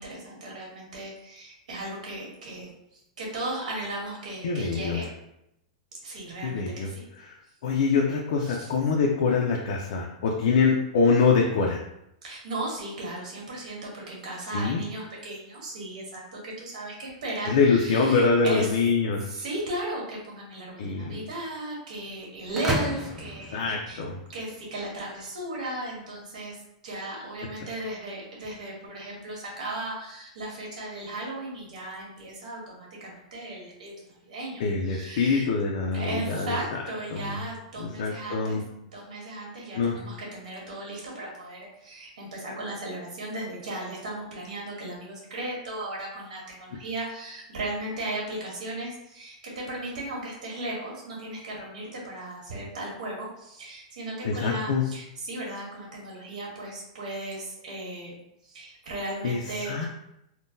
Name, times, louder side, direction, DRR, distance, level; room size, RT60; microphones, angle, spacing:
voice 1, 0.0-5.1 6.0-7.1 8.4-8.7 12.2-18.7 19.2-24.0 24.3-35.5 35.9-38.6 38.9-58.2 58.4-59.9, right 1 dB, 85° right, -3 dB, 1.5 m, -36 dB
voice 2, 4.4-5.0 6.4-6.9 7.3-7.4 7.6-11.8 14.5-14.8 17.5-19.3 20.8-21.2 23.5-24.2 34.6-36.8 37.1-37.4 37.8-38.6 39.7-40.0 54.2-54.8 59.2-59.4 59.7-59.9, left 4 dB, 55° left, -1 dB, 0.4 m, -24 dB
sound 1, 22.5-24.5, right 1 dB, 5° right, 0.4 m, -32 dB
3.7 x 2.2 x 2.6 m, 0.81 s
supercardioid pair, 165°, 4 cm